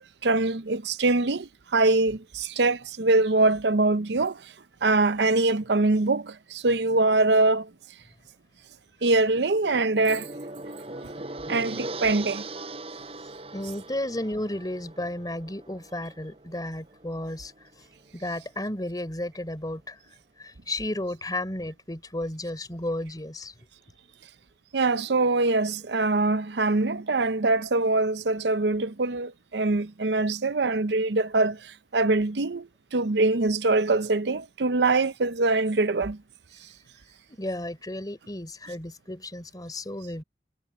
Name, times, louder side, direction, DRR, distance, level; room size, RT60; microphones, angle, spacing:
voice 1, 0.2-4.5 4.8-7.7 9.0-10.3 11.5-12.4 24.7-36.2, right 3 dB, 75° right, 0.7 m, -23 dB
Gong, 9.3-17.6, right 2 dB, 35° right, 7.8 m, -40 dB
voice 2, 13.5-17.5 18.1-20.0 20.4-23.5 37.4-40.2, left 1 dB, 20° left, 3.8 m, -33 dB
head